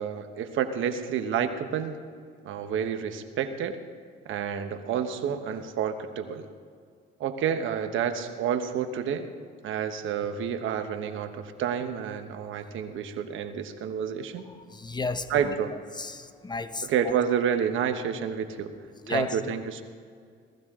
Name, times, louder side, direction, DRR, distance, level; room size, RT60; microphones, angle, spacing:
voice 1, 0.0-2.0 2.5-3.8 4.3-6.5 7.2-9.3 9.6-14.5 15.3-15.7 16.8-18.7 19.1-19.8, right 8 dB, 80° right, 8 dB, 1.1 m, -29 dB
voice 2, 14.7-15.5 16.0-16.9 19.0-19.4, left 3 dB, 20° left, 10 dB, 0.8 m, -32 dB
18.5 x 14.5 x 3.7 m, 2.1 s
cardioid pair, 90°, 20 cm